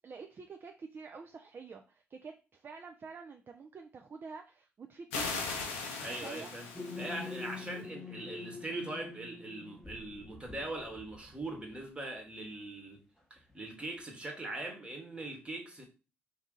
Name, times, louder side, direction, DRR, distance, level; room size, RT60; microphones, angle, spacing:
voice 1, 0.0-5.3 6.1-6.5, right 5 dB, 35° right, 0.4 m, -48 dB
sound 1, 5.1-7.7, left 4 dB, 75° left, 0.5 m, -39 dB
voice 2, 6.0-6.7 7.0-13.0 13.3-15.9, right 2 dB, 15° right, 1.1 m, -41 dB
sound 2, 6.7-11.5, left 4 dB, 5° left, 0.9 m, -45 dB
2.6 x 2.4 x 3.8 m
figure-of-eight pair, 45°, 6 cm